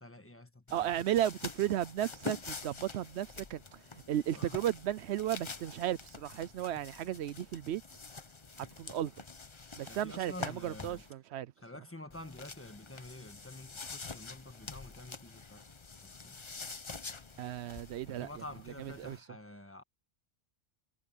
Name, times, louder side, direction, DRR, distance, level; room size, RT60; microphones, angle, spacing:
voice 1, 0.0-1.1 4.3-4.6 9.9-11.1 11.6-16.4 18.1-19.8, left 1 dB, 10° left, 1.4 m, -49 dB
sound 1, 0.7-11.1 12.1-19.2, left 4 dB, 30° left, 0.8 m, -46 dB
voice 2, 0.7-3.8 4.1-7.8 8.8-9.1 9.8-11.5 17.4-18.3 19.0-19.2, right 12 dB, 80° right, 0.8 m, -34 dB
omnidirectional pair, 1.1 m